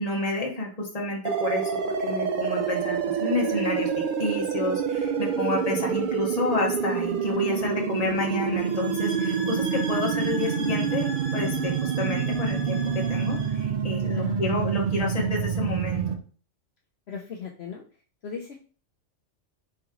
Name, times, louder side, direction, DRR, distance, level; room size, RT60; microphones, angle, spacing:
voice 1, 0.0-1.7 2.0-16.2, left 2 dB, 30° left, 0 dB, 1.2 m, -30 dB
sound 1, 1.2-16.1, right 6 dB, 55° right, 0.6 m, -27 dB
voice 2, 5.7-6.1 14.1-14.7 17.1-17.8 18.2-18.6, left 7 dB, 60° left, 0 dB, 0.9 m, -38 dB
sound 2, 8.6-13.6, right 1 dB, 85° right, 2.2 m, -39 dB
4.6 x 3.0 x 3.7 m, 0.40 s
omnidirectional pair, 1.3 m